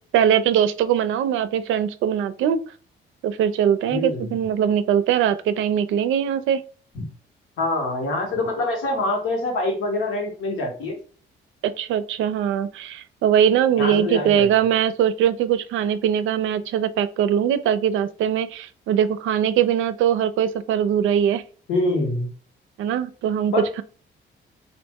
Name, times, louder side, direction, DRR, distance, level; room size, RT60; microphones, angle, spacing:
voice 1, 0.1-2.6 3.2-6.6 11.6-21.4 22.8-23.8, right 9 dB, 80° right, 0.4 m, -21 dB
voice 2, 3.9-4.3 6.9-7.1 7.6-10.9 13.8-14.5 21.7-22.3 23.5-23.8, left 2 dB, 90° left, 1.2 m, -25 dB
3.0 x 2.5 x 3.5 m
cardioid pair, 90°, 20 cm